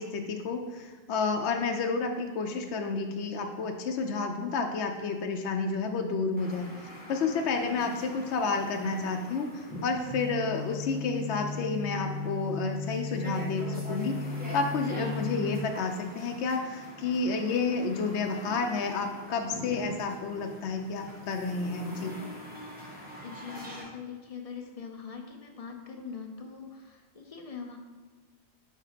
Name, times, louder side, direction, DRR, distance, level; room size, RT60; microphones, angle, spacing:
voice 1, 0.0-6.7 7.1-9.5 9.8-14.1 14.5-22.1, left 4 dB, 80° left, 4 dB, 0.9 m, -30 dB
sound 1, 6.4-23.8, equal, 10° right, 1.1 m, -44 dB
sound 2, 10.1-15.6, left 3 dB, 55° right, 0.4 m, -36 dB
voice 2, 23.2-27.8, left 6 dB, 40° left, 3 dB, 0.6 m, -42 dB
5.6 x 3.6 x 4.9 m, 1.5 s
omnidirectional pair, 1.1 m